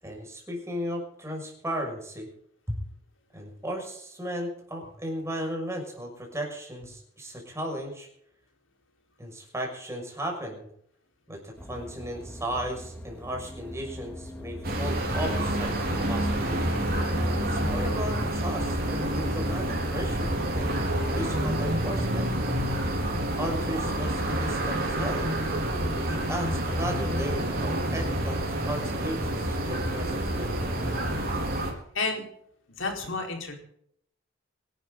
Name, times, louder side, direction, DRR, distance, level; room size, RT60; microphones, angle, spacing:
voice 1, 0.0-2.3 2.7-2.8 3.3-8.1 9.2-10.7 11.3-16.6 17.4-20.9 21.1-22.3 23.4-25.3 25.9-30.5, equal, 15° right, 1 dB, 6.3 m, -35 dB
sound 1, 11.6-19.5, equal, 10° left, 2.1 m, -42 dB
sound 2, 14.6-31.7, right 1 dB, 50° right, 4.7 m, -28 dB
voice 2, 31.9-32.3 32.8-33.5, left 3 dB, 70° left, 2 dB, 4.6 m, -31 dB
25.0 x 12.5 x 4.0 m, 0.69 s
head